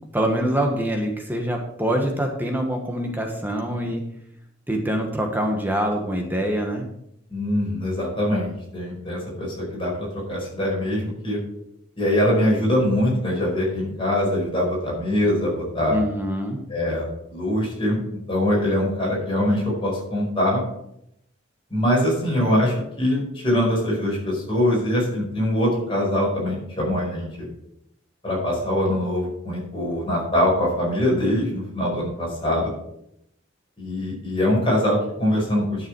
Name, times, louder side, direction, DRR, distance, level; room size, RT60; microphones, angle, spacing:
voice 1, 0.1-4.0 4.7-6.9 15.9-16.6, equal, 10° right, 2 dB, 1.2 m, -25 dB
voice 2, 7.3-11.4 12.0-16.0 16.7-18.0 18.3-20.6 21.7-27.5 28.2-32.7 33.8-35.9, left 1 dB, 25° left, -4 dB, 4.9 m, -23 dB
11.5 x 6.9 x 4.6 m, 0.77 s
head